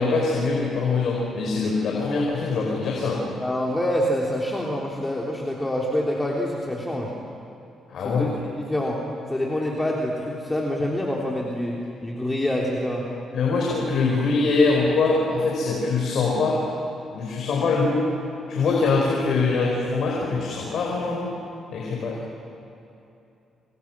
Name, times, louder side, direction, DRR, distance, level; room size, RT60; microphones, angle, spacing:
voice 1, 0.0-3.2 7.9-8.2 13.3-16.6 17.1-18.1 18.5-21.4 21.7-22.2, left 3 dB, 65° left, -2 dB, 5.2 m, -23 dB
voice 2, 3.4-7.1 8.0-8.3 8.6-9.0 9.3-13.1, left 1 dB, 15° left, -3 dB, 3.4 m, -26 dB
28.5 x 27.5 x 6.2 m, 2.8 s
cardioid pair, 90°, 0 cm